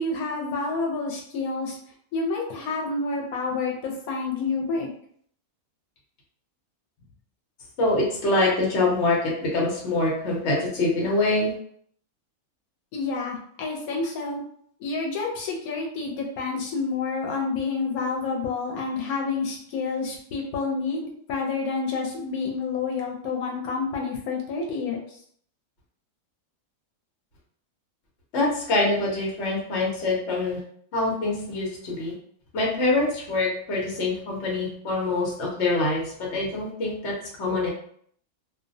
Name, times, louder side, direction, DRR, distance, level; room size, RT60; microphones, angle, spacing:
voice 1, 0.0-1.8 2.1-4.9 12.9-14.4 14.8-25.2, left 4 dB, 85° left, -1 dB, 1.0 m, -29 dB
voice 2, 7.8-11.5 28.3-30.6 30.9-32.1 32.5-37.1 37.4-37.7, left 2 dB, 55° left, -2 dB, 1.0 m, -25 dB
2.5 x 2.1 x 2.6 m, 0.62 s
omnidirectional pair, 1.5 m